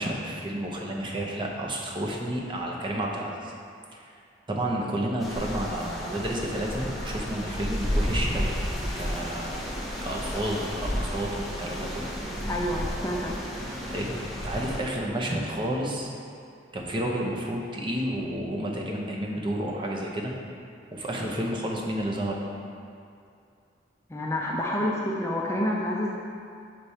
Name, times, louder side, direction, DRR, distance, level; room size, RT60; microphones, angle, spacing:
voice 1, 0.0-3.5 3.9-4.1 4.5-8.6 8.9-9.7 10.0-12.1 13.9-16.1 16.7-20.3 20.9-22.4, right 1 dB, 30° right, -1 dB, 0.8 m, -31 dB
sound 1, 5.2-14.8, equal, ahead, 0.9 m, -32 dB
voice 2, 12.5-13.4 24.1-26.2, left 1 dB, 15° left, -3 dB, 0.5 m, -28 dB
5.9 x 5.0 x 4.2 m, 2.4 s
head